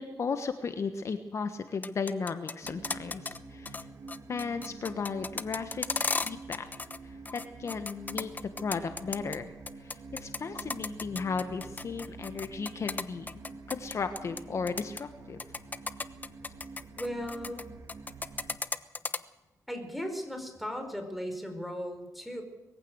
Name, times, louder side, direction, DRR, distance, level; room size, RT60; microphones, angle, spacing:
voice 1, 0.0-3.8 4.3-5.9 6.2-6.7 7.3-8.3 8.6-9.5 9.8-13.3 13.7-15.4 17.5-17.7, left 5 dB, 50° left, 8 dB, 1.4 m, -35 dB
sound 1, 1.7-3.4 3.6-3.8 4.1-7.0 7.2-9.4 9.7-14.4 14.7-15.0 15.4-17.6 17.9-19.2, left 3 dB, 25° left, 1.0 m, -34 dB
sound 2, 2.6-18.6, right 3 dB, 55° right, 2.7 m, -47 dB
voice 2, 17.0-17.6 19.7-22.4, equal, ahead, 6 dB, 4.8 m, -37 dB
21.5 x 15.5 x 8.1 m, 1.1 s
cardioid pair, 95°, 6 cm